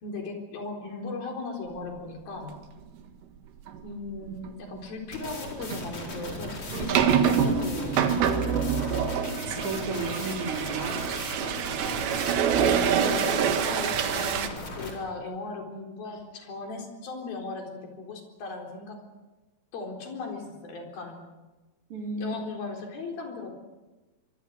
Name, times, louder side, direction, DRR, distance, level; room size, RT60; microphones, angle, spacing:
voice 1, 0.0-2.5 3.8-9.2 12.5-19.0 19.7-21.2 22.2-23.6, left 3 dB, 60° left, 2 dB, 5.8 m, -37 dB
sound 1, 3.7-3.8 4.3-4.5 5.6-14.5, right 8 dB, 80° right, 3.9 m, -26 dB
sound 2, 5.1-14.9, left 2 dB, 35° left, 5.4 m, -38 dB
voice 2, 9.5-11.1 21.9-22.3, right 3 dB, 35° right, 1 dB, 4.3 m, -33 dB
24.5 x 24.5 x 6.6 m, 1.1 s
omnidirectional pair, 4.9 m